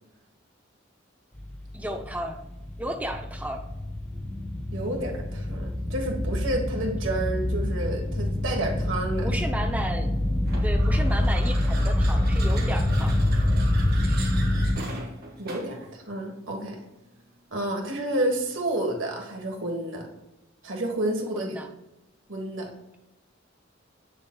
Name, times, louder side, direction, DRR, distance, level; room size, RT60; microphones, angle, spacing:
sound 1, 1.3-14.7, left 1 dB, 10° left, 1.1 m, -26 dB
voice 1, 1.7-2.4 2.8-3.6 9.2-10.1 10.6-13.2 21.3-21.7, right 1 dB, 10° right, 3 dB, 0.6 m, -33 dB
voice 2, 4.7-9.3 15.4-16.8 17.5-20.1 20.6-21.6 22.3-22.7, right 1 dB, 75° right, 1 dB, 1.4 m, -30 dB
sound 2, 10.4-15.8, right 3 dB, 50° right, 1.6 m, -39 dB
7.3 x 6.7 x 2.3 m, 0.95 s
head